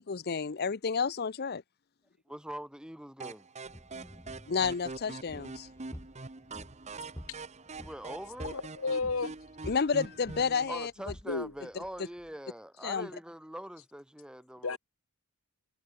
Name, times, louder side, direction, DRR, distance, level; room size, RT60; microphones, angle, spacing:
voice 1, 0.1-1.6 4.5-5.7 9.6-10.9 12.8-13.1, left 5 dB, 45° left, 0.6 m, -30 dB
voice 2, 2.3-3.5 7.7-8.5 10.7-14.8, equal, 5° right, 2.2 m, -43 dB
sound 1, 3.2-10.8, right 3 dB, 30° right, 1.1 m, -44 dB
sound 2, 3.6-12.3, equal, 15° left, 2.4 m, -50 dB
voice 3, 8.4-9.3 11.3-11.5 14.6-14.8, left 4 dB, 70° left, 1.3 m, -32 dB
head